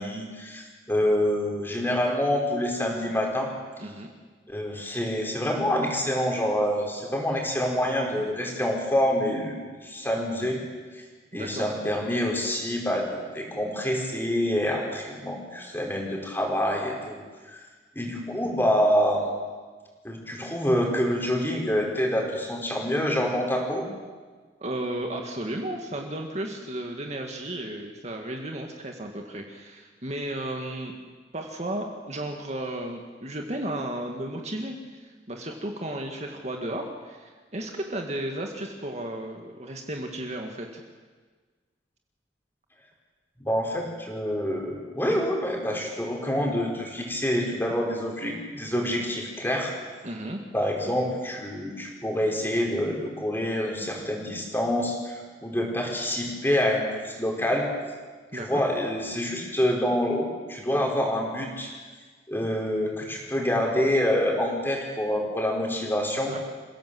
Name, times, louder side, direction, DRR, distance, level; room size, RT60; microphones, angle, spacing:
voice 1, 0.0-3.5 4.5-10.6 10.9-11.0 11.3-17.2 17.5-17.6 17.9-19.3 20.0-23.9 43.4-49.7 50.5-57.7 58.3-61.7 62.3-66.3, equal, 10° left, 0 dB, 4.9 m, -26 dB
voice 2, 3.8-4.1 11.3-11.7 24.6-30.9 31.3-40.8 50.0-50.4 58.3-58.6 66.2-66.4, right 1 dB, 40° right, 2 dB, 2.1 m, -34 dB
28.0 x 17.0 x 7.9 m, 1.4 s
head